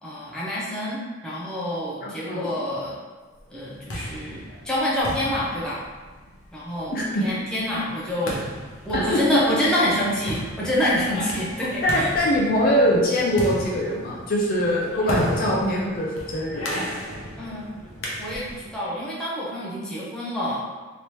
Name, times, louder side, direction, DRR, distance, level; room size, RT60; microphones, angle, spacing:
voice 1, 0.0-3.0 3.5-5.8 6.5-6.9 7.2-8.4 8.8-12.1 17.4-17.7 18.2-20.6, equal, 5° left, -8 dB, 0.7 m, -27 dB
voice 2, 2.0-2.5 6.9-7.2 8.9-9.6 11.8-16.9, equal, 45° left, -3 dB, 0.5 m, -23 dB
sound 1, 3.5-18.7, equal, 85° left, 0.7 m, -34 dB
3.3 x 2.9 x 3.0 m, 1.3 s
head